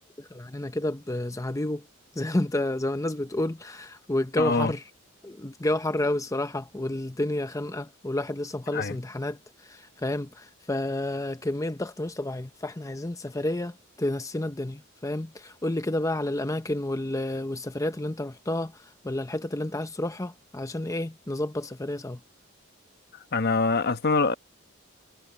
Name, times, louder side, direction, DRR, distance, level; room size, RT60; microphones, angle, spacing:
voice 1, 0.2-1.9 2.2-4.8 5.2-22.2, left 1 dB, 15° left, 0.7 m, -30 dB
voice 2, 4.4-4.7 8.7-9.0 23.3-24.4, left 4 dB, 55° left, 1.0 m, -24 dB
head